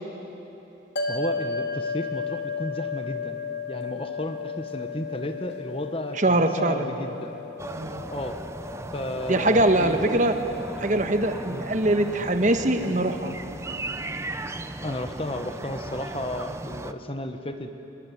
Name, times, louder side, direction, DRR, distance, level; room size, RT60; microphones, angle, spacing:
sound 1, 1.0-13.4, left 4 dB, 70° left, 2.2 m, -35 dB
voice 1, 1.1-3.4 3.7-7.4 8.1-8.4 8.9-10.4 11.5-11.7 14.8-17.7, left 1 dB, 30° left, 7 dB, 1.3 m, -33 dB
voice 2, 6.2-6.9 7.7-8.0 9.3-10.4 10.8-13.3, right 1 dB, 40° right, 7 dB, 1.4 m, -22 dB
sound 2, 7.6-16.9, right 2 dB, 15° right, 0.7 m, -36 dB
23.0 x 22.0 x 9.8 m, 3.0 s
head